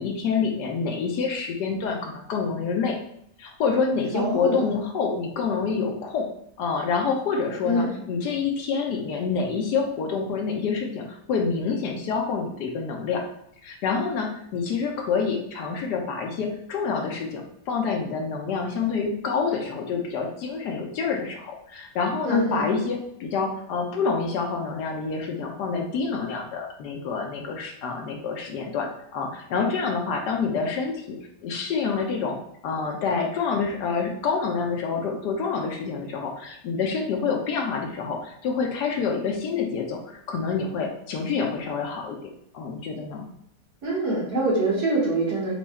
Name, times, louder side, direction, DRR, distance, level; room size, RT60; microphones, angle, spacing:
voice 1, 0.0-3.0 3.4-6.3 6.6-13.2 13.6-32.4 32.6-42.2 42.5-43.2, left 5 dB, 75° left, 2 dB, 1.2 m, -27 dB
voice 2, 4.1-4.7 7.6-7.9 22.2-22.7 43.8-45.5, right 1 dB, 65° right, -5 dB, 1.7 m, -24 dB
4.5 x 2.3 x 4.1 m, 0.71 s
omnidirectional pair, 1.9 m